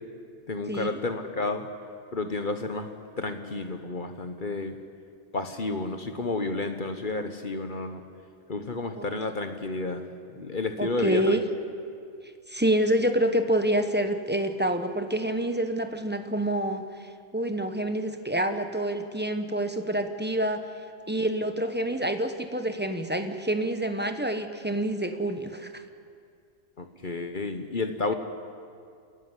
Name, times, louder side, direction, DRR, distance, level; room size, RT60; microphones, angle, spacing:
voice 1, 0.5-1.7 2.1-2.9 3.2-4.8 5.3-8.0 8.5-10.0 10.3-11.4 26.8-28.1, left 3 dB, 40° left, 7 dB, 1.2 m, -31 dB
voice 2, 10.8-11.4 12.5-16.8 17.3-20.6 21.1-25.8, right 1 dB, 10° right, 7 dB, 1.0 m, -27 dB
30.0 x 11.0 x 9.8 m, 2.3 s
omnidirectional pair, 1.4 m